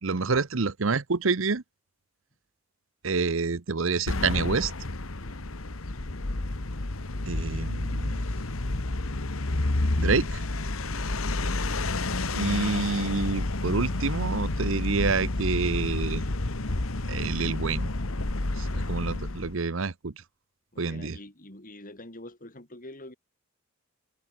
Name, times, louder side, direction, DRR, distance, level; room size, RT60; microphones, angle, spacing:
voice 1, 0.0-1.6 3.0-4.7 7.3-8.2 10.0-10.4 12.3-16.2 17.1-17.9 18.6-20.1 20.8-21.2, right 4 dB, 70° right, 0.9 m, -28 dB
sound 1, 4.1-19.6, left 2 dB, 85° left, 1.6 m, -30 dB
voice 2, 20.7-23.1, left 1 dB, 40° left, 4.6 m, -46 dB
head